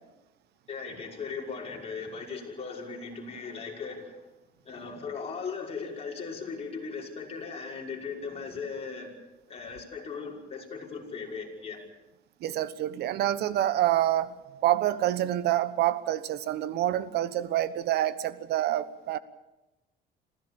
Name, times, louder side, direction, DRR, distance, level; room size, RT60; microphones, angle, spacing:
voice 1, 0.7-4.3 4.6-9.1 9.5-11.8, left 5 dB, 35° left, -2 dB, 6.0 m, -38 dB
voice 2, 12.4-19.2, right 13 dB, 75° right, 14 dB, 1.2 m, -27 dB
26.5 x 15.5 x 7.1 m, 1.0 s
cardioid pair, 110°, 17 cm